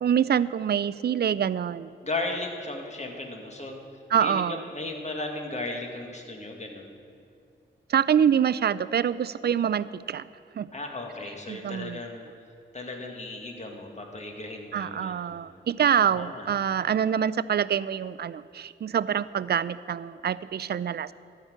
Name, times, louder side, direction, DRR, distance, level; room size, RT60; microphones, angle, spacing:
voice 1, 0.0-1.9 4.1-4.6 7.9-10.3 10.6-10.7 11.5-12.0 14.7-21.1, right 8 dB, 55° right, 17 dB, 0.4 m, -25 dB
voice 2, 2.0-3.8 4.2-7.0 10.7-12.2 12.7-15.3 16.0-16.5, left 2 dB, 35° left, 2 dB, 2.0 m, -35 dB
13.0 x 5.9 x 8.0 m, 2.3 s
cardioid pair, 45°, 20 cm